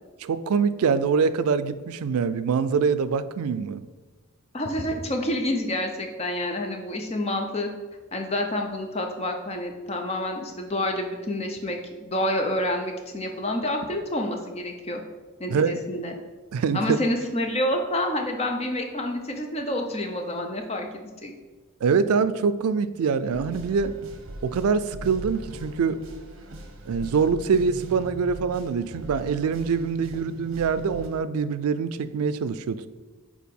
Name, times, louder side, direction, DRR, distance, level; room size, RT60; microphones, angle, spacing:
voice 1, 0.2-3.8 15.5-15.8 16.5-17.0 21.8-24.0 24.4-26.0 26.9-32.9, right 5 dB, 85° right, 14 dB, 0.4 m, -24 dB
voice 2, 4.5-7.7 8.1-15.0 15.4-16.1 16.7-21.3, left 1 dB, 30° left, 4 dB, 0.6 m, -28 dB
sound 1, 23.3-31.1, right 1 dB, 65° right, 0.8 m, -40 dB
4.7 x 4.3 x 5.3 m, 1.3 s
head